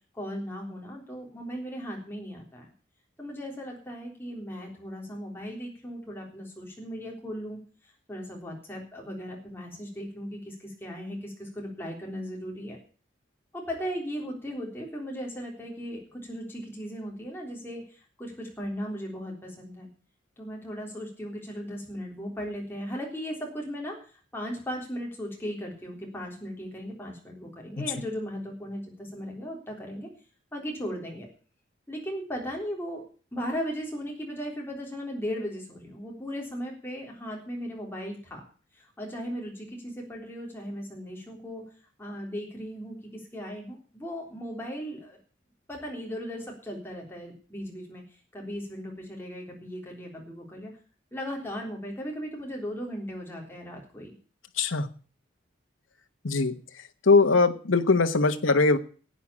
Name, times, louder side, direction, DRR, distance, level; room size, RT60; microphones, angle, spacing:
voice 1, 0.1-2.7 3.2-12.8 13.5-19.9 20.4-30.1 30.5-31.3 31.9-33.1 33.3-38.4 38.7-41.6 42.0-45.2 45.7-48.0 48.3-50.7 51.1-54.1, equal, 10° left, -1 dB, 3.7 m, -37 dB
voice 2, 54.6-54.9 56.2-56.5 57.1-58.8, left 3 dB, 85° left, 8 dB, 1.1 m, -21 dB
11.5 x 8.7 x 8.5 m, 0.41 s
head